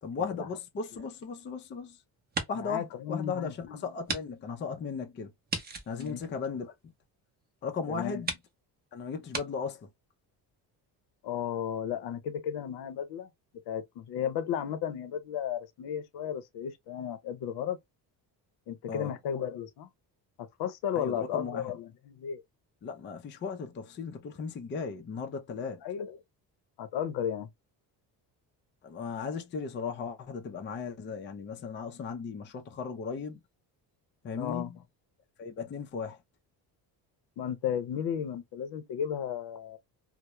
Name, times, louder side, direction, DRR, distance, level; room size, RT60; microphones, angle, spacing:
voice 1, 0.0-2.0 2.5-5.3 5.9-6.7 7.6-8.3 8.9-9.9 18.9-19.1 21.0-21.7 22.8-25.8 28.8-33.4 34.2-34.8 35.4-36.2, left 5 dB, 30° left, 0.4 m, -36 dB
sound 1, 0.8-1.8 2.2-2.8 3.2-3.3 4.0-4.2 4.5-4.6 5.5-7.0 7.7-7.8 8.2-8.5 9.3-9.5, right 3 dB, 25° right, 0.6 m, -37 dB
voice 2, 2.5-3.9 6.0-6.2 7.9-8.2 11.2-13.3 13.7-17.8 18.7-19.9 20.4-22.4 25.8-26.2 26.8-27.5 34.4-34.7 37.4-39.8, left 9 dB, 70° left, 0.6 m, -34 dB
2.2 x 2.0 x 2.8 m
cardioid pair, 105°, 42 cm